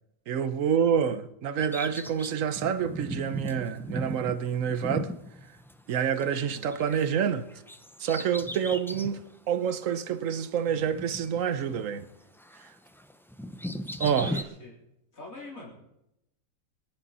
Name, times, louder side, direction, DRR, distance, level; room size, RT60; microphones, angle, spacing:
voice 1, 0.3-5.1 5.9-7.5 8.0-9.2 9.5-12.0 14.0-14.4, right 8 dB, 75° right, 1.3 m, -27 dB
Bird vocalization bird call bird song, 1.6-6.2 6.5-9.2 9.7-9.8 10.7-12.1 12.4-14.4, equal, 5° left, 0.3 m, -38 dB
voice 2, 6.4-6.8 14.2-14.8 15.1-15.7, left 2 dB, 85° left, 4.4 m, -45 dB
25.0 x 10.5 x 4.2 m
omnidirectional pair, 1.4 m